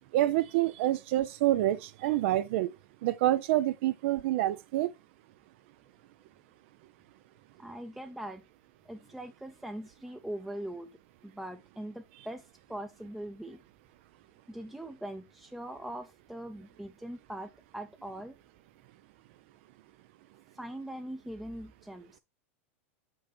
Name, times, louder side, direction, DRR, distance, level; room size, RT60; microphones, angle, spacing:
voice 1, 0.1-2.7 3.0-4.9, right 14 dB, 60° right, 0.4 m, -27 dB
voice 2, 7.6-8.4 8.8-10.9 11.2-13.6 14.5-18.4 20.5-22.2, right 1 dB, 5° right, 0.5 m, -41 dB
5.4 x 5.3 x 4.2 m
hypercardioid pair, 120°, 7 cm